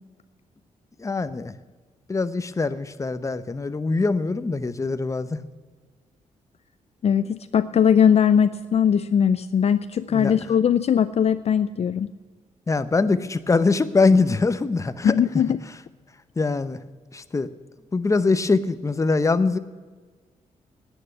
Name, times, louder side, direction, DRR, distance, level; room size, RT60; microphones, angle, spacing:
voice 1, 1.0-1.5 2.1-5.4 10.1-10.3 12.7-15.2 16.4-16.8 17.1-17.5 17.9-19.6, left 3 dB, 25° left, 12 dB, 0.8 m, -23 dB
voice 2, 7.0-12.1 15.0-15.6, left 8 dB, 50° left, 12 dB, 0.5 m, -20 dB
9.9 x 9.3 x 9.8 m, 1.4 s
cardioid pair, 90°, 14 cm